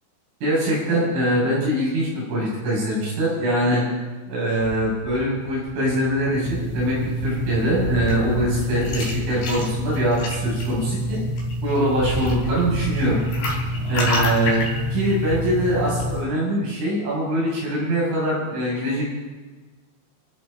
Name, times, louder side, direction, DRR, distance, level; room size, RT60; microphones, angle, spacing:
voice 1, 0.4-3.9 4.3-11.2 11.6-13.2 13.9-14.7 14.9-19.1, equal, 75° right, -5 dB, 8.8 m, -23 dB
sound 1, 4.6-14.0, right 4 dB, 55° right, 5.5 m, -35 dB
sound 2, 6.2-16.2, left 1 dB, 60° left, 5.5 m, -27 dB
28.0 x 11.0 x 4.0 m, 1.3 s
omnidirectional pair, 5.8 m